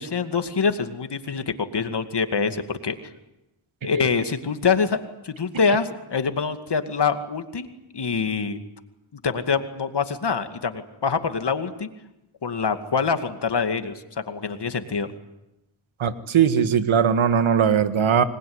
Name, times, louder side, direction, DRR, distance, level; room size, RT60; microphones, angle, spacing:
voice 1, 0.0-3.0 3.8-5.0 5.2-7.7 7.9-8.6 9.2-11.9 12.4-15.1, left 5 dB, 60° left, 8 dB, 2.4 m, -25 dB
voice 2, 16.0-18.2, right 7 dB, 85° right, 10 dB, 1.8 m, -19 dB
26.5 x 21.0 x 9.7 m, 0.95 s
cardioid pair, 60°, 47 cm